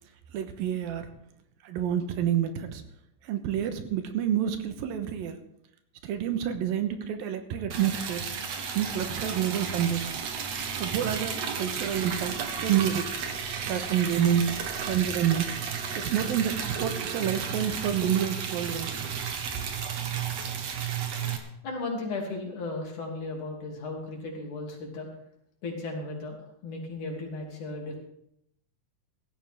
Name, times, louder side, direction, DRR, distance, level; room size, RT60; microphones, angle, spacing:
voice 1, 0.3-1.1 1.6-2.8 3.2-5.4 6.0-8.3 8.7-10.3 10.8-13.1 13.6-14.4 14.8-15.5 15.9-18.9, right 9 dB, 80° right, 8 dB, 2.9 m, -28 dB
Liquid, 7.7-21.4, right 6 dB, 55° right, 2.2 m, -33 dB
voice 2, 21.4-25.1 25.6-26.4 26.6-28.0, left 2 dB, 60° left, -1 dB, 4.3 m, -35 dB
16.5 x 14.0 x 3.6 m, 0.75 s
omnidirectional pair, 4.1 m